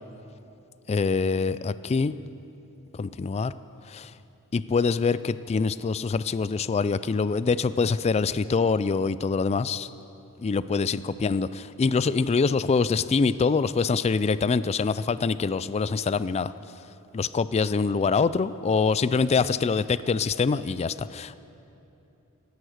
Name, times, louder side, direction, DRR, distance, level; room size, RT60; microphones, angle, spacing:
voice 1, 0.9-2.1 2.9-3.5 3.9-4.1 4.5-9.9 10.4-16.5 17.1-21.3, left 4 dB, 30° left, 16 dB, 0.3 m, -25 dB
16.5 x 11.5 x 6.5 m, 2.9 s
head